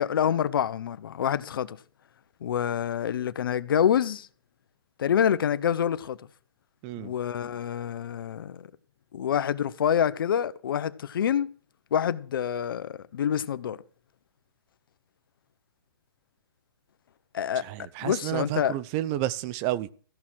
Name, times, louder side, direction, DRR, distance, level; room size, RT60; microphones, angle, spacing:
voice 1, 0.0-1.8 2.4-4.3 5.0-6.2 7.0-8.7 9.1-11.5 11.9-13.8 17.3-17.6 18.0-18.7, left 9 dB, 65° left, 1.0 m, -27 dB
voice 2, 17.6-19.9, right 14 dB, 30° right, 0.7 m, -31 dB
14.0 x 6.2 x 7.6 m
hypercardioid pair, 145°, 13 cm